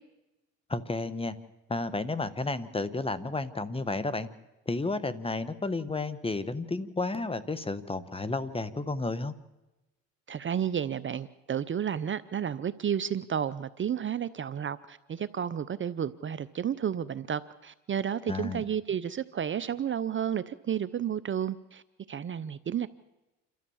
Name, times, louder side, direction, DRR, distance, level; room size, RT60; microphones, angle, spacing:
voice 1, 0.7-1.3 1.7-4.3 4.7-9.3 18.3-18.6, left 3 dB, 15° left, 14 dB, 1.3 m, -32 dB
voice 2, 10.3-21.8 22.1-22.9, right 8 dB, 35° right, 16 dB, 0.7 m, -32 dB
28.0 x 13.0 x 7.2 m, 1.0 s
supercardioid pair, 80°, 34 cm